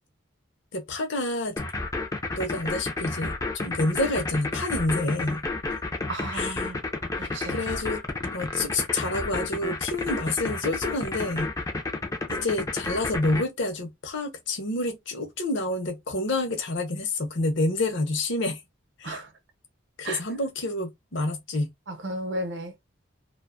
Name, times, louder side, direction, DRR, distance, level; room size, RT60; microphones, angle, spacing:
voice 1, 0.7-1.6 2.4-5.4 6.3-6.7 7.5-8.0 8.3-11.5 12.3-18.6 19.0-19.2 20.0-21.7, left 2 dB, 60° left, 0.7 m, -28 dB
sound 1, 1.6-13.4, left 3 dB, 15° left, 0.3 m, -30 dB
voice 2, 6.1-6.8 7.1-7.6 19.0-19.3 20.0-20.2 21.9-22.7, right 1 dB, 60° right, 0.7 m, -34 dB
2.4 x 2.2 x 2.3 m
head